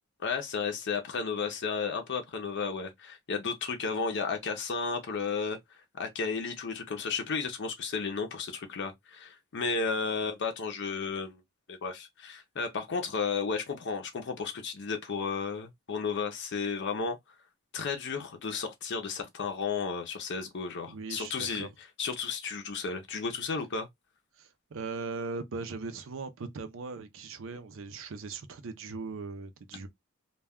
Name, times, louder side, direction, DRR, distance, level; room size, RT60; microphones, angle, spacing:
voice 1, 0.2-5.6 5.9-11.4 11.7-17.2 17.7-21.7 22.0-23.9, left 5 dB, 55° left, 0.5 m, -33 dB
voice 2, 20.9-21.7 24.4-29.9, right 4 dB, 65° right, 0.5 m, -39 dB
2.2 x 2.2 x 3.4 m
head